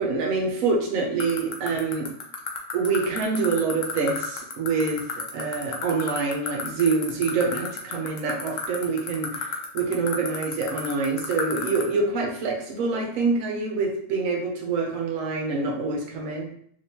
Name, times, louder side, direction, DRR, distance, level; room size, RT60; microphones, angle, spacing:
voice 1, 0.0-2.1 2.7-5.0 5.3-16.5, right 4 dB, 70° right, 1 dB, 1.0 m, -26 dB
sound 1, 1.2-11.8, left 8 dB, 65° left, 0.9 m, -30 dB
3.2 x 2.9 x 2.8 m, 0.64 s
omnidirectional pair, 1.6 m